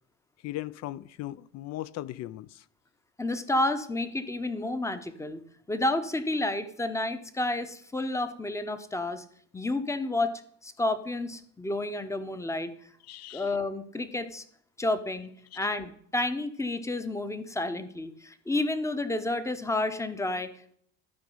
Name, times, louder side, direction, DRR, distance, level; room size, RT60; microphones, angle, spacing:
voice 1, 0.4-2.7 13.1-13.6, left 15 dB, 50° left, 0.5 m, -38 dB
voice 2, 3.2-5.4 5.7-9.2 9.5-12.7 13.3-14.4 14.8-15.3 15.6-20.7, left 2 dB, 10° left, 0.8 m, -30 dB
12.0 x 5.0 x 5.4 m
cardioid pair, 115°, 33 cm